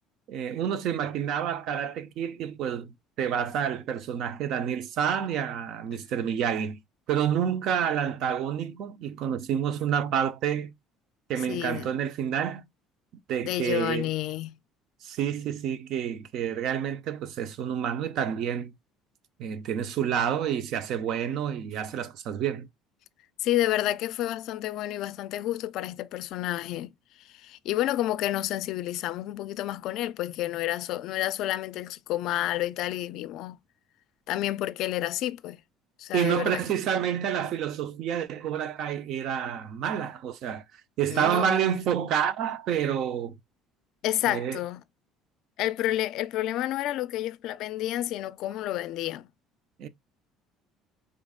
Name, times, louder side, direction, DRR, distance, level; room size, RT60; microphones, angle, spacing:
voice 1, 0.3-6.8 7.1-10.7 11.3-12.6 13.3-14.1 15.0-18.7 19.4-22.7 36.1-40.6 41.0-43.4 44.3-44.6 49.8-49.9, right 9 dB, 50° right, 0.7 m, -29 dB
voice 2, 11.5-11.9 13.4-14.6 23.4-26.9 27.2-33.6 34.3-35.6 36.0-36.6 41.1-41.8 44.0-44.8 45.6-49.3, left 14 dB, 55° left, 0.4 m, -30 dB
5.1 x 3.8 x 2.3 m
cardioid pair, 160°, 0 cm